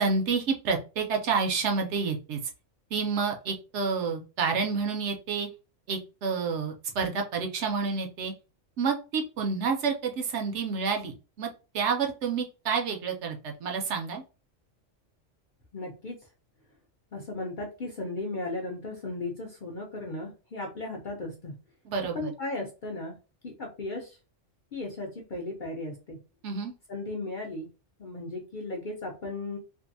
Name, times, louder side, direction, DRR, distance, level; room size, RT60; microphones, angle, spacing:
voice 1, 0.0-2.4 2.9-5.5 5.9-8.3 8.8-11.5 11.7-14.2 21.8-22.3 26.4-26.7, right 5 dB, 70° right, 3 dB, 0.8 m, -29 dB
voice 2, 15.7-16.2 17.1-21.6 22.1-23.1 23.4-24.2 24.7-26.2 26.9-27.7 28.0-29.6, left 2 dB, 55° left, 0 dB, 0.6 m, -36 dB
2.6 x 2.4 x 2.6 m, 0.32 s
omnidirectional pair, 1.3 m